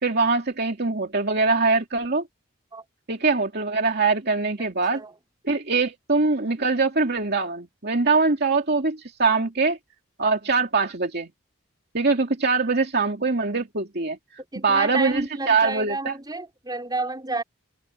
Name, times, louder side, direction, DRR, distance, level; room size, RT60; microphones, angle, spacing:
voice 1, 0.0-2.2 3.1-5.0 5.4-9.8 10.2-11.3 11.9-14.2 14.6-16.2, right 4 dB, 50° right, 2.6 m, -23 dB
voice 2, 4.6-5.1 14.5-17.4, right 2 dB, 20° right, 5.1 m, -31 dB
head